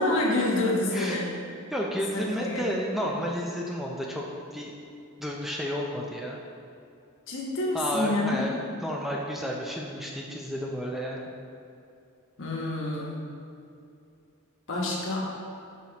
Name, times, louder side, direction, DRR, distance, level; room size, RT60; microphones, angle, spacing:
voice 1, 0.0-1.3 2.1-2.7 7.3-8.4 12.4-13.2 14.7-15.2, left 2 dB, 60° left, -3 dB, 1.2 m, -27 dB
voice 2, 1.7-4.7 5.2-6.4 7.7-11.3, equal, ahead, -2 dB, 0.4 m, -31 dB
7.2 x 5.8 x 2.9 m, 2.5 s
head